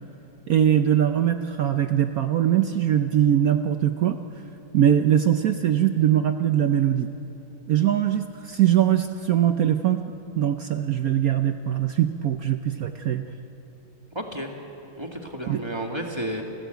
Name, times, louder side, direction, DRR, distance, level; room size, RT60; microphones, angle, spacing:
voice 1, 0.5-4.2 4.7-7.1 7.7-13.3 15.5-15.6, right 10 dB, 65° right, 8 dB, 0.9 m, -22 dB
voice 2, 14.1-14.5 15.0-16.4, right 1 dB, 15° right, 2 dB, 1.8 m, -31 dB
29.5 x 15.0 x 8.1 m, 3.0 s
omnidirectional pair, 2.2 m